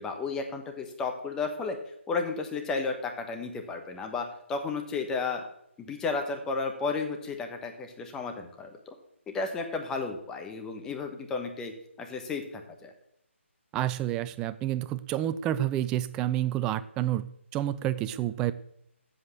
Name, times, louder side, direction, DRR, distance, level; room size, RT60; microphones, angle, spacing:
voice 1, 0.0-1.8 2.1-5.4 5.8-8.7 9.3-11.7 12.0-12.9, left 4 dB, 10° left, 4 dB, 1.2 m, -33 dB
voice 2, 13.7-18.5, right 12 dB, 10° right, 14 dB, 0.3 m, -29 dB
7.8 x 7.8 x 8.6 m, 0.74 s
figure-of-eight pair, 155°, 7 cm